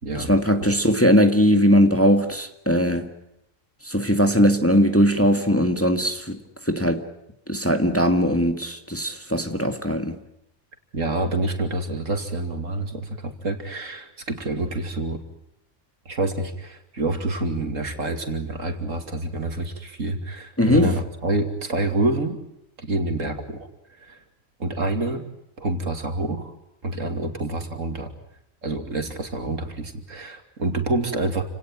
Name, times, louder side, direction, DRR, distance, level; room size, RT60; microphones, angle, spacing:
voice 1, 0.3-3.1 3.8-6.4 6.6-7.0 7.5-10.2 20.6-20.9, equal, 10° left, 1.8 m, -19 dB
voice 2, 10.9-15.2 16.0-22.4 22.8-24.2 24.6-25.3 25.6-26.5 26.8-28.1 28.6-31.4, right 2 dB, 75° right, 3.2 m, -27 dB
29.5 x 18.0 x 9.2 m
omnidirectional pair, 1.4 m